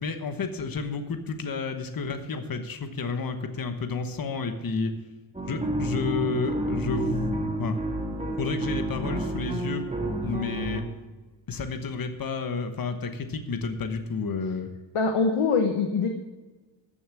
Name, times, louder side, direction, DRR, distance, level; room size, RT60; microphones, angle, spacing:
voice 1, 0.0-4.9 5.5-7.3 7.6-7.8 8.4-9.8 10.2-10.8 11.5-14.7, left 4 dB, 45° left, 8 dB, 1.1 m, -31 dB
sound 1, 5.3-10.8, right 1 dB, 15° right, 1.9 m, -30 dB
voice 2, 14.9-16.1, left 4 dB, 80° left, 4 dB, 1.2 m, -23 dB
14.5 x 7.1 x 6.1 m, 1.2 s
wide cardioid pair, 155°, 49 cm